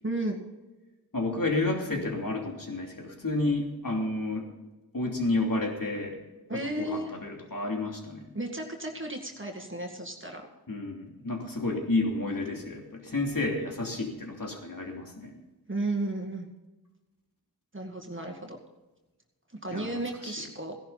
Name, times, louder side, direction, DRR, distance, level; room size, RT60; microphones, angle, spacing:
voice 1, 0.0-0.4 6.5-7.1 8.3-10.5 15.7-16.5 17.7-18.6 19.6-20.8, right 2 dB, 30° right, 2 dB, 1.9 m, -33 dB
voice 2, 1.1-4.5 4.9-6.2 6.5-8.2 10.7-15.3 19.7-20.3, left 2 dB, 55° left, 1 dB, 3.1 m, -31 dB
16.5 x 11.5 x 4.1 m, 1.1 s
wide cardioid pair, 55°, 39 cm